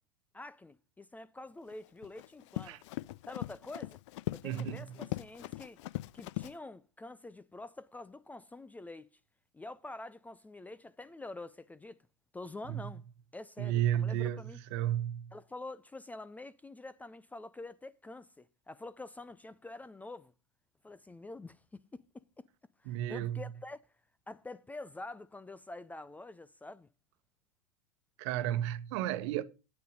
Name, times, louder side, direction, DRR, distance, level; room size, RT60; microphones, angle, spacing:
voice 1, 0.3-2.8 3.3-4.0 4.3-5.8 6.1-9.2 9.5-12.0 12.3-13.0 13.3-14.6 15.3-20.3 20.8-22.5 22.8-23.9 24.3-26.9, left 2 dB, 10° left, 0.5 m, -47 dB
Run, 1.7-6.5, left 18 dB, 60° left, 0.5 m, -40 dB
voice 2, 4.4-4.9 12.7-12.8 13.6-14.4 14.7-15.3 22.9-23.4 28.2-29.4, right 11 dB, 55° right, 1.1 m, -32 dB
9.3 x 9.3 x 5.1 m
hypercardioid pair, 100°, 17 cm